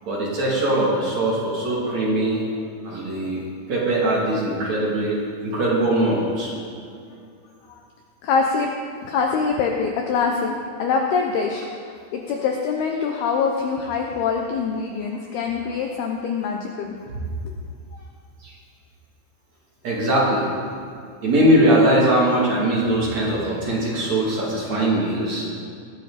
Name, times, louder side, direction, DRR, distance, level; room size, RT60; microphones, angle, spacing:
voice 1, 0.0-2.4 2.8-3.4 3.7-6.5 17.1-17.2 18.4-18.5 19.8-20.5 21.2-25.5, right 1 dB, 40° right, -5 dB, 3.6 m, -21 dB
voice 2, 8.2-8.7 9.1-11.7 12.1-16.9 17.4-17.5, left 5 dB, 75° left, 2 dB, 2.4 m, -24 dB
19.5 x 15.0 x 4.2 m, 2.3 s
omnidirectional pair, 5.6 m